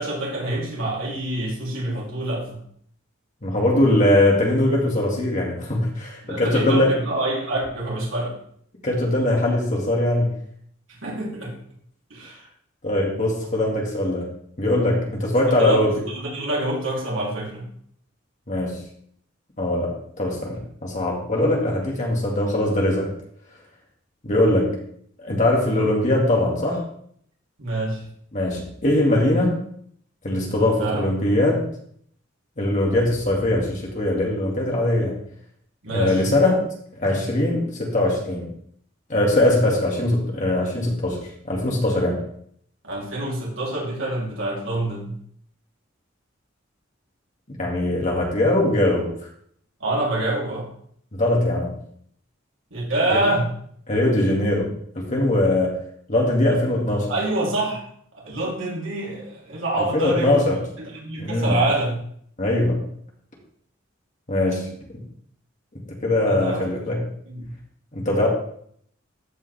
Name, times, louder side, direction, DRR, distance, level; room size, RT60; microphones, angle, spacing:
voice 1, 0.0-2.6 6.2-8.3 11.0-11.6 12.1-12.5 15.5-17.6 27.6-28.0 30.8-31.1 35.8-36.2 42.8-45.2 49.8-50.7 52.7-53.5 57.1-57.8 58.1-60.4 60.8-62.0 66.2-66.6 67.3-67.4, right 1 dB, 85° right, -4 dB, 3.3 m, -26 dB
voice 2, 3.4-6.9 8.8-10.3 12.8-14.3 14.6-15.9 18.5-18.8 19.6-23.1 24.2-24.8 25.2-26.8 28.3-29.6 30.2-31.7 32.6-35.2 35.9-36.6 36.9-38.5 39.1-42.3 47.5-49.1 51.1-51.7 53.1-53.2 53.9-55.8 56.1-57.1 59.9-60.7 61.2-61.6 62.4-62.9 64.3-64.7 66.0-67.0 67.9-68.3, left 1 dB, 40° left, -2 dB, 2.3 m, -21 dB
14.0 x 5.4 x 3.4 m, 0.64 s
head